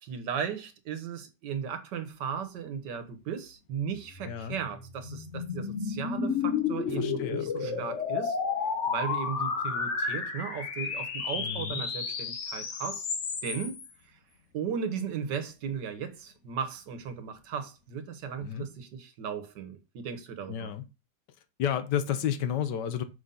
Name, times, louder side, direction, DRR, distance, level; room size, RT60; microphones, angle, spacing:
voice 1, 0.0-8.4 8.9-13.1 13.4-13.8 14.5-20.7, right 7 dB, 80° right, 1.7 m, -36 dB
sound 1, 4.1-13.9, left 5 dB, 50° left, 1.2 m, -32 dB
voice 2, 4.2-4.6 7.0-7.9 11.4-11.8 18.4-18.7 20.5-20.8 21.6-23.0, left 9 dB, 85° left, 1.5 m, -32 dB
5.9 x 3.9 x 5.5 m
omnidirectional pair, 1.8 m